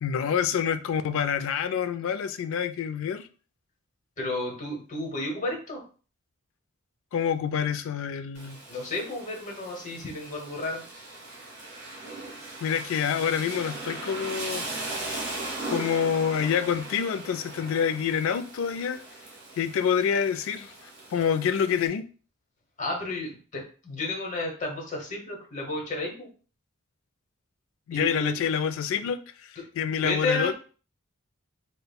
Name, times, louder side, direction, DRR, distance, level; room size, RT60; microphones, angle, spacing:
voice 1, 0.0-3.3 7.1-8.6 12.6-14.6 15.7-19.0 19.6-22.1 27.9-30.5, left 7 dB, 65° left, 0.3 m, -27 dB
voice 2, 4.2-5.8 8.7-10.8 22.8-26.3 27.9-28.4 30.0-30.5, left 2 dB, 35° left, 0.9 m, -32 dB
Rain, 8.3-21.9, right 2 dB, 50° right, 1.2 m, -39 dB
5.1 x 2.2 x 2.2 m
head